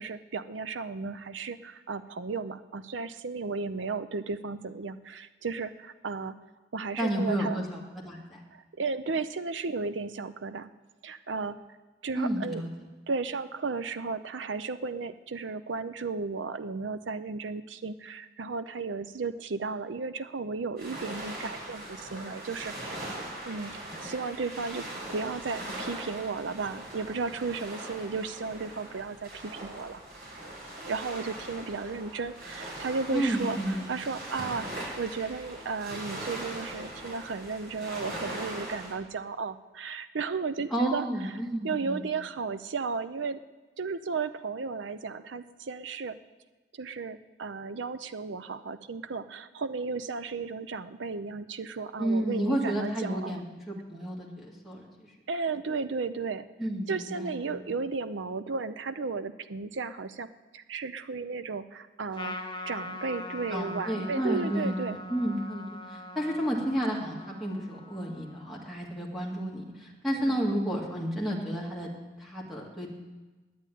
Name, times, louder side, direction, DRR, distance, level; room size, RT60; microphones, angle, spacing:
voice 1, 0.0-6.3 6.7-7.6 8.5-10.7 11.0-11.6 12.0-12.6 13.1-30.0 30.9-41.3 41.6-43.4 43.8-46.2 46.7-53.4 55.3-56.5 56.9-60.3 60.5-62.4 62.7-65.0 70.1-70.4, right 4 dB, 85° right, 11 dB, 0.6 m, -34 dB
voice 2, 7.0-8.4 12.1-12.7 33.1-33.8 40.7-42.0 52.0-55.1 56.6-57.6 63.5-71.9 72.2-72.9, right 1 dB, ahead, -3 dB, 2.0 m, -31 dB
sound 1, 20.8-38.9, right 1 dB, 55° right, 5.0 m, -40 dB
Trumpet, 62.1-68.8, left 1 dB, 25° left, 1.0 m, -42 dB
10.5 x 9.3 x 9.2 m, 1.2 s
head